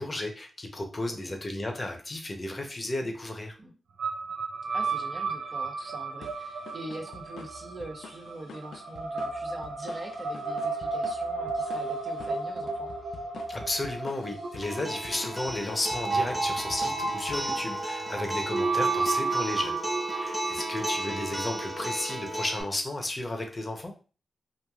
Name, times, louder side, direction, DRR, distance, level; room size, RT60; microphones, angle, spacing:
voice 1, 0.0-3.6 13.5-19.8 20.1-23.9, left 2 dB, 30° left, 3 dB, 0.7 m, -33 dB
voice 2, 1.1-1.4 3.6-3.8 4.7-13.2 20.4-20.8, right 1 dB, 45° right, 1 dB, 0.7 m, -43 dB
sound 1, 4.0-22.1, right 3 dB, 85° right, 0.4 m, -33 dB
sound 2, 6.2-18.2, left 4 dB, 85° left, 0.3 m, -48 dB
Acoustic guitar, 14.6-22.6, right 1 dB, 10° right, 1.0 m, -35 dB
3.0 x 2.5 x 2.3 m, 0.35 s
cardioid pair, 65°, 0 cm